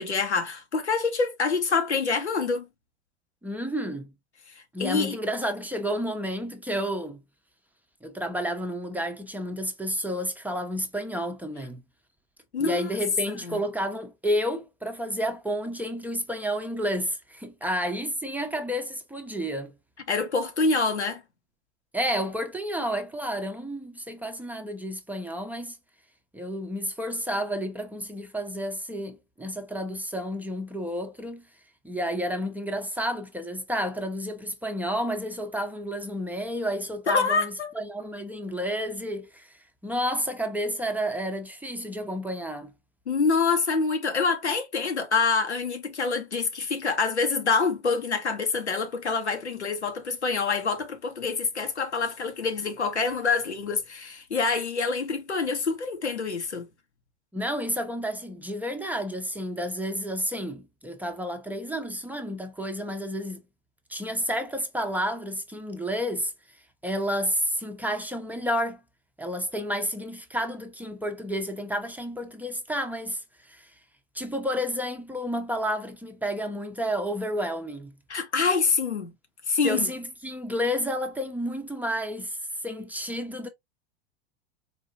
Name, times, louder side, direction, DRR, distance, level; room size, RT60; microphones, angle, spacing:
voice 1, 0.0-2.7 4.6-5.2 12.5-12.9 13.4-13.6 20.1-21.2 37.1-37.7 43.1-56.7 78.1-79.1 79.5-79.9, left 4 dB, 85° left, 0.9 m, -26 dB
voice 2, 3.4-4.1 4.7-7.2 8.0-11.8 12.6-19.8 21.9-25.8 26.3-31.4 31.8-42.7 57.3-63.4 63.9-66.3 66.8-68.8 69.2-73.7 74.1-78.0 79.6-83.5, equal, 5° right, 0.6 m, -31 dB
4.3 x 2.7 x 2.6 m
figure-of-eight pair, 85°, 33 cm